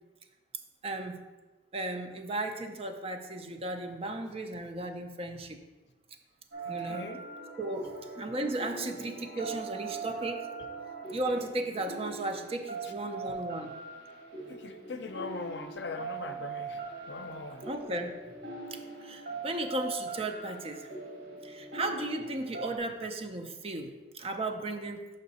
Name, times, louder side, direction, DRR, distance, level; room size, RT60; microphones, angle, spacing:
voice 1, 0.8-1.2 1.7-5.6 6.7-7.0 7.6-10.5 11.1-13.7 17.6-18.1 19.0-20.9 21.4-25.1, right 2 dB, 35° right, 6 dB, 0.5 m, -35 dB
sound 1, 6.5-22.8, right 4 dB, 85° right, 1.5 m, -41 dB
voice 2, 6.7-7.2 13.3-13.4 14.5-16.8 17.1-17.6, left 4 dB, 70° left, 8 dB, 0.5 m, -40 dB
5.7 x 5.3 x 4.1 m, 1.2 s
head